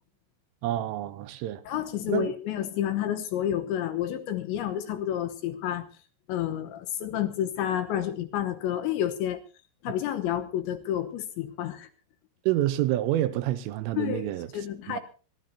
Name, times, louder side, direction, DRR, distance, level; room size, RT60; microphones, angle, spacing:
voice 1, 0.6-1.6 2.1-2.3 12.5-14.5 14.9-15.0, right 14 dB, 80° right, 3.3 m, -28 dB
voice 2, 1.7-5.9 6.3-9.4 9.8-11.9 14.0-15.0, left 11 dB, 75° left, 3.1 m, -30 dB
23.5 x 16.5 x 2.8 m
omnidirectional pair, 6.0 m